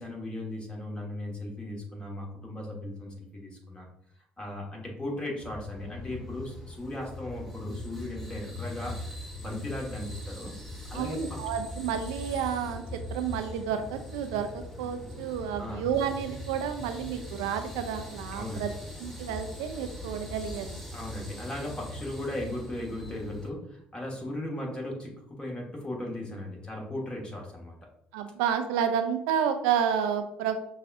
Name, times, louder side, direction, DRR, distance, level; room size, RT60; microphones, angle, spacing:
voice 1, 0.0-3.9 4.4-10.5 10.9-11.7 15.6-15.8 18.3-18.6 20.9-27.8, left 1 dB, 20° left, -1 dB, 1.4 m, -37 dB
sound 1, 5.4-23.5, left 1 dB, 5° left, 0.9 m, -41 dB
voice 2, 10.9-18.7 19.0-20.8 28.1-30.6, right 8 dB, 80° right, 7 dB, 0.4 m, -30 dB
5.9 x 2.3 x 2.5 m, 0.75 s
hypercardioid pair, 60°, 4 cm